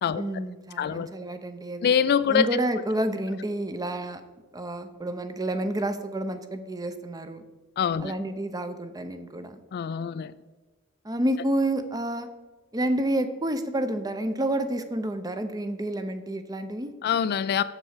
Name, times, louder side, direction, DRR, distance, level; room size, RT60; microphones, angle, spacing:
voice 1, 0.1-1.9 2.3-4.2 4.5-7.4 8.0-9.6 11.0-12.3 12.7-16.9, right 1 dB, 20° right, 9 dB, 0.6 m, -29 dB
voice 2, 0.8-1.1 1.8-2.6 7.8-8.1 9.7-10.3 17.0-17.6, left 7 dB, 50° left, 14 dB, 0.3 m, -24 dB
7.2 x 6.6 x 6.5 m, 1.2 s
head